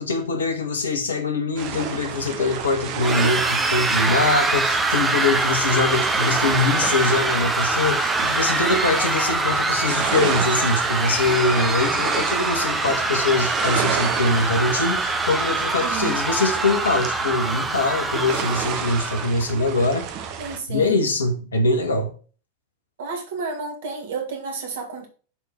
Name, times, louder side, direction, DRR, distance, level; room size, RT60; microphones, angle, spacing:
voice 1, 0.0-20.1 20.7-22.1, left 3 dB, 70° left, 1.6 m, -23 dB
sound 1, 1.6-20.6, right 7 dB, 40° right, 1.0 m, -32 dB
sound 2, 3.0-19.3, right 3 dB, 10° right, 1.0 m, -24 dB
voice 2, 15.8-16.2 20.4-21.0 23.0-25.1, right 4 dB, 60° right, 2.2 m, -31 dB
6.9 x 4.0 x 5.8 m
figure-of-eight pair, 90°, 0 cm